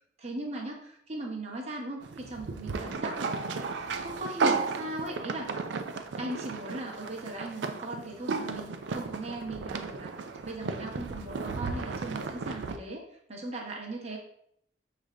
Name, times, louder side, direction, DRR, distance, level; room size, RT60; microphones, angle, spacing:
voice 1, 0.2-3.3 3.8-5.5 6.2-10.1 10.4-13.0 13.3-14.2, right 1 dB, 35° right, -1 dB, 0.9 m, -38 dB
sound 1, 2.0-12.8, right 4 dB, 85° right, 0.4 m, -34 dB
6.3 x 2.5 x 3.3 m, 0.71 s
head